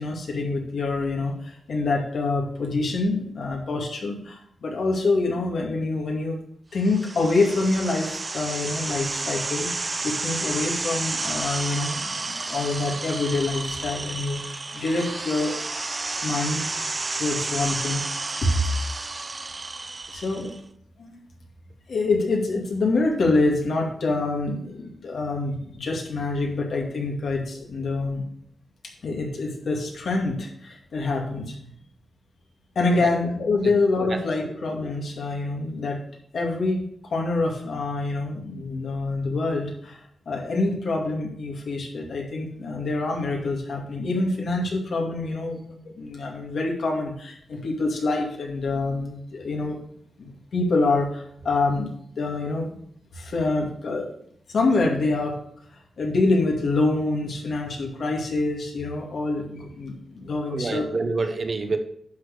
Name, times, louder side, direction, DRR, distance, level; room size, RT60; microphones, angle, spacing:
voice 1, 0.0-6.4 6.7-15.5 16.2-16.7 17.2-18.0 18.4-18.6 20.1-20.5 21.0-21.2 21.9-28.2 29.0-31.6 32.8-36.0 36.3-36.8 37.1-49.8 50.2-52.8 53.1-54.1 54.5-55.4 56.0-60.9, left 3 dB, 65° left, 1 dB, 2.2 m, -26 dB
sound 1, 6.8-20.6, right 3 dB, 30° right, 0.5 m, -31 dB
voice 2, 60.5-61.8, right 3 dB, 45° right, 7 dB, 1.0 m, -27 dB
11.0 x 4.3 x 6.5 m, 0.67 s
wide cardioid pair, 130°, 0 cm